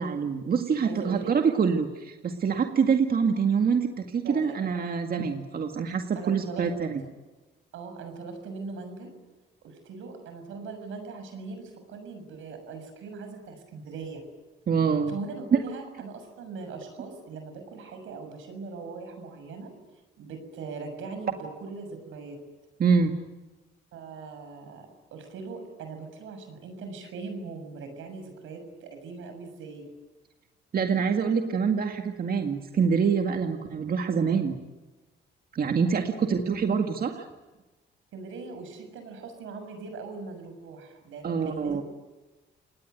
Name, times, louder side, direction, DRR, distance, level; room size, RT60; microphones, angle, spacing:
voice 1, 0.0-7.0 14.7-15.1 15.5-15.6 22.8-23.1 30.7-34.5 35.5-37.3 41.2-41.8, right 6 dB, 50° right, 5 dB, 2.0 m, -25 dB
voice 2, 0.8-1.3 4.2-4.6 6.2-6.6 7.0-7.1 7.7-9.1 9.6-14.2 15.1-19.7 20.2-22.4 23.9-29.9 35.8-36.3 38.1-41.8, right 4 dB, 85° right, 7 dB, 6.8 m, -40 dB
29.0 x 19.0 x 9.3 m, 1.2 s
cardioid pair, 90°, 20 cm